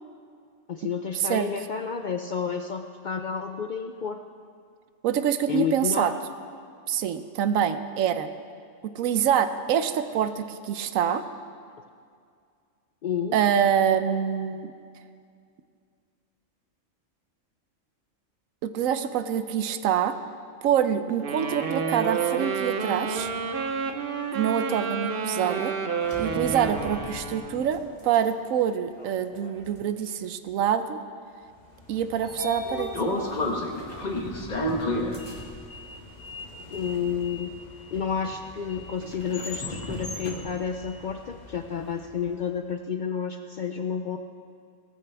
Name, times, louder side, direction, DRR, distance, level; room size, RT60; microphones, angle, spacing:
voice 1, 0.7-4.2 5.5-6.1 13.0-13.4 36.7-37.5 37.9-44.2, left 7 dB, 75° left, 6 dB, 0.4 m, -30 dB
voice 2, 5.0-6.1 6.9-8.3 8.9-11.2 13.3-14.7 18.6-20.1 20.6-23.3 24.3-25.7 26.2-31.0 31.9-32.9, right 9 dB, 85° right, 11 dB, 1.1 m, -25 dB
Wind instrument woodwind instrument, 21.2-27.7, right 5 dB, 50° right, 0.9 m, -29 dB
sound 1, 22.4-22.7 23.1-24.0 25.9-28.2 28.5-30.2 30.5-30.8 31.9-32.0 33.6-36.0 36.4-37.1 37.6-37.7 39.0-40.1, left 1 dB, 20° left, 1.7 m, -42 dB
Sliding door, 31.8-41.9, left 1 dB, 35° left, 1.2 m, -33 dB
17.5 x 14.5 x 3.4 m, 2.3 s
omnidirectional pair, 1.4 m